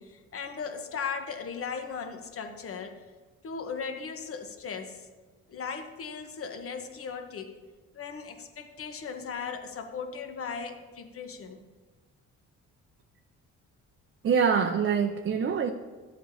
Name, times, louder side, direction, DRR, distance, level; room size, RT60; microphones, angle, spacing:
voice 1, 0.0-3.0 3.4-5.1 5.5-7.5 7.9-11.6, left 5 dB, 50° left, 7 dB, 1.0 m, -37 dB
voice 2, 14.2-15.7, right 6 dB, 40° right, 5 dB, 0.6 m, -25 dB
12.5 x 7.7 x 2.7 m, 1.3 s
cardioid pair, 90°, 30 cm